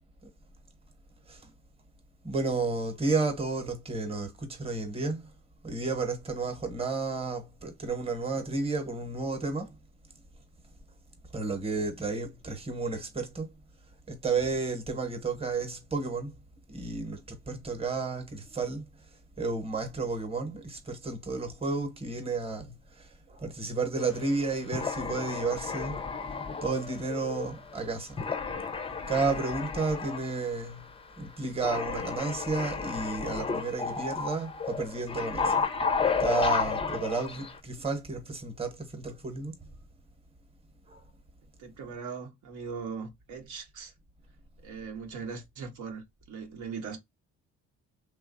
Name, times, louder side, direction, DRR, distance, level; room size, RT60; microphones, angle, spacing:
voice 1, 2.2-5.2 5.6-9.7 11.3-13.5 14.1-16.3 16.7-18.8 19.4-26.0 26.6-28.2 29.0-30.9 31.2-35.6 36.2-39.6 40.9-41.0 41.8-41.9, right 3 dB, 20° right, 0.9 m, -32 dB
sound 1, 24.0-24.3 24.7-27.8 28.2-30.4 30.7-30.8 31.6-37.6, left 5 dB, 20° left, 0.4 m, -32 dB
voice 2, 41.6-43.9 44.6-47.0, right 5 dB, 80° right, 0.8 m, -40 dB
3.1 x 2.3 x 2.5 m
cardioid pair, 90°, 30 cm